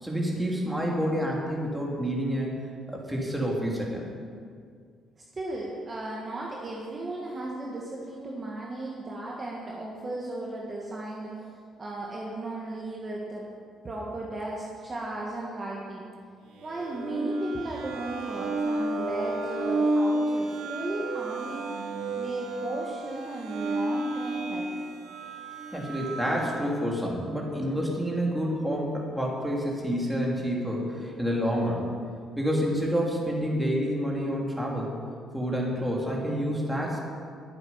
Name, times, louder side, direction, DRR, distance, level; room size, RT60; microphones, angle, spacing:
voice 1, 0.0-2.5 2.9-4.0 25.7-31.9 32.3-34.9 35.3-37.0, equal, 5° right, -3 dB, 3.0 m, -28 dB
voice 2, 5.3-11.5 11.8-13.5 13.8-16.1 16.6-21.8 22.2-24.7, right 2 dB, 25° right, -3 dB, 1.7 m, -36 dB
sound 1, 16.6-26.8, right 2 dB, 85° right, 2.8 m, -31 dB
22.0 x 8.1 x 5.8 m, 2.1 s
cardioid pair, 150°, 0 cm